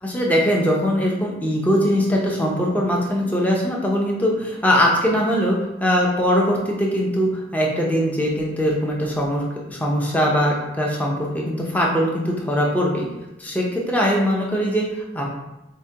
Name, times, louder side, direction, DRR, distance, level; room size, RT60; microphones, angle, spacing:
voice 1, 0.0-13.1 13.4-15.3, equal, 10° left, -2 dB, 0.5 m, -21 dB
4.6 x 2.2 x 2.7 m, 0.96 s
head